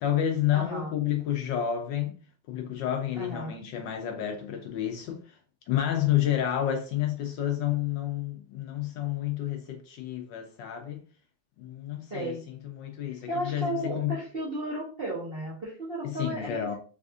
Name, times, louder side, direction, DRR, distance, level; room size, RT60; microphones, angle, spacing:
voice 1, 0.0-2.2 2.5-5.4 5.7-11.0 11.6-14.2 16.0-16.7, left 11 dB, 75° left, 1.1 m, -30 dB
voice 2, 0.5-0.9 3.2-3.6 12.1-12.4 13.1-16.7, right 1 dB, 45° right, 0.8 m, -34 dB
4.1 x 2.5 x 2.3 m
omnidirectional pair, 2.2 m